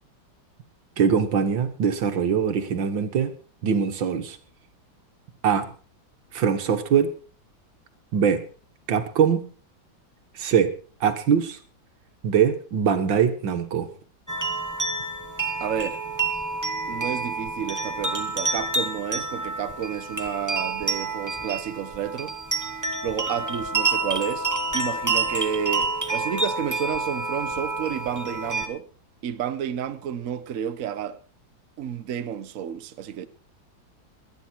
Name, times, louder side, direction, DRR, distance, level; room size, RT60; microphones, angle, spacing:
voice 1, 1.0-3.3 3.6-4.4 5.4-5.7 6.3-7.1 8.1-8.4 8.9-9.5 10.4-10.7 11.0-11.6 12.2-13.9, right 7 dB, 70° right, 2.1 m, -22 dB
sound 1, 14.3-28.7, right 3 dB, 15° right, 0.9 m, -28 dB
voice 2, 15.6-16.0 16.9-22.3 23.0-24.5 24.7-28.9 29.2-31.2 31.8-33.3, right 9 dB, 55° right, 1.0 m, -30 dB
22.0 x 9.5 x 4.5 m
omnidirectional pair, 2.1 m